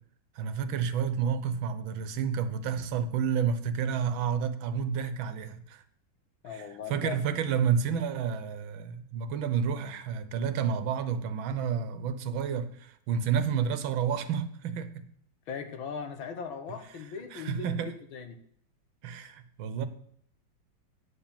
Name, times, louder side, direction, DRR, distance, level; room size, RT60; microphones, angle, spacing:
voice 1, 0.3-5.8 6.5-15.0 17.3-17.9 19.0-19.9, right 7 dB, 80° right, 1.7 m, -30 dB
voice 2, 6.4-7.2 15.5-18.4, left 6 dB, 80° left, 2.0 m, -39 dB
9.4 x 7.3 x 7.2 m
omnidirectional pair, 2.2 m